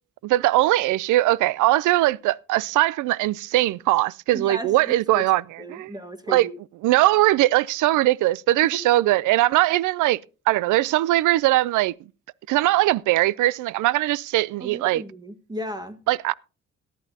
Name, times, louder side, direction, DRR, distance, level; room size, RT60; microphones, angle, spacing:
voice 1, 0.2-5.9 6.3-6.5 6.8-10.2 10.5-11.9 12.5-15.0 16.1-16.3, right 16 dB, 80° right, 0.5 m, -20 dB
voice 2, 4.3-5.2 5.6-6.5 14.6-16.0, right 1 dB, 15° right, 1.5 m, -35 dB
17.5 x 11.0 x 2.8 m
cardioid pair, 90°, 30 cm